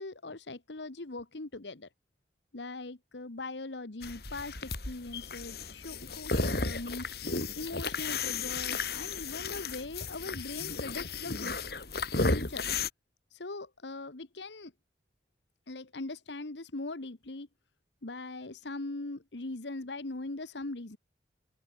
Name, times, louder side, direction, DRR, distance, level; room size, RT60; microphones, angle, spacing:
voice 1, 0.0-1.9 2.5-7.1 7.5-11.6 12.3-12.6 13.3-14.7 15.7-17.5 18.0-21.0, left 2 dB, 80° left, 1.4 m, -40 dB
sound 1, 4.0-12.9, left 3 dB, 60° left, 3.0 m, -34 dB
open air
head